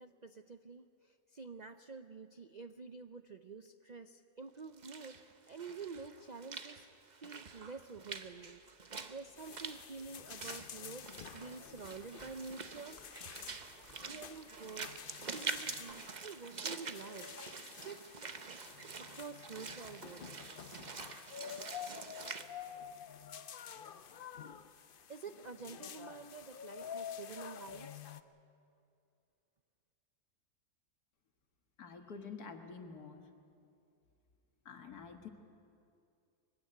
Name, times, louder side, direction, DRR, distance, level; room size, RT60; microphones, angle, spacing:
voice 1, 0.0-6.9 7.2-8.6 8.9-13.4 14.0-18.3 19.0-20.4 25.1-28.0, right 4 dB, 65° right, 9 dB, 0.4 m, -49 dB
Walk footsteps / Splash splatter, 4.6-22.4, right 5 dB, 35° right, 0.8 m, -46 dB
sound 1, 8.1-16.0, left 1 dB, 25° left, 4.9 m, -66 dB
sound 2, 9.4-28.2, left 8 dB, 55° left, 0.6 m, -49 dB
voice 2, 31.8-33.2 34.7-35.3, left 5 dB, 75° left, 5 dB, 2.1 m, -48 dB
22.0 x 16.0 x 10.0 m, 2.5 s
omnidirectional pair, 1.6 m